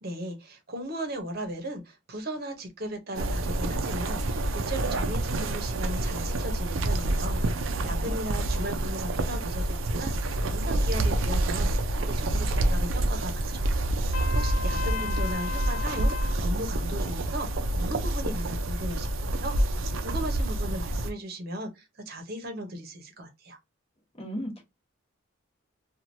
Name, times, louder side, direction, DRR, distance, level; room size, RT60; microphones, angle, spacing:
voice 1, 0.0-16.1 16.4-23.6, right 1 dB, 50° right, 0.8 m, -37 dB
sound 1, 3.1-21.1, right 1 dB, 80° right, 0.5 m, -28 dB
voice 2, 7.8-8.1 24.2-24.6, equal, 30° left, 1.1 m, -36 dB
Trumpet, 14.1-16.4, left 5 dB, 90° left, 0.6 m, -35 dB
3.0 x 2.4 x 2.6 m
head